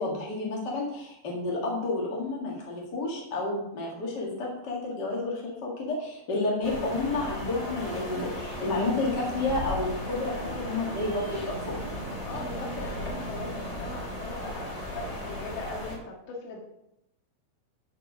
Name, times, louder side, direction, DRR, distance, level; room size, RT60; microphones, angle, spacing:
voice 1, 0.0-11.7, left 2 dB, 55° left, -3 dB, 1.2 m, -30 dB
sound 1, 6.6-16.0, equal, 30° left, 1.5 m, -36 dB
voice 2, 12.2-16.6, left 2 dB, 75° left, -2 dB, 4.2 m, -40 dB
13.0 x 4.7 x 6.2 m, 0.85 s
omnidirectional pair, 5.2 m